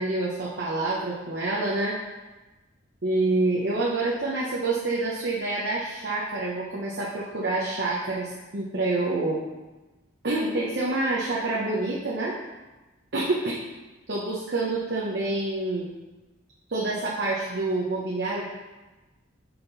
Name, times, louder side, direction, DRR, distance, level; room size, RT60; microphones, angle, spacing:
voice 1, 0.0-2.0 3.0-9.4 10.2-12.4 13.1-13.5 14.1-15.9 16.7-18.5, right 2 dB, 55° right, -5 dB, 0.8 m, -27 dB
5.7 x 4.3 x 3.9 m, 1.1 s
head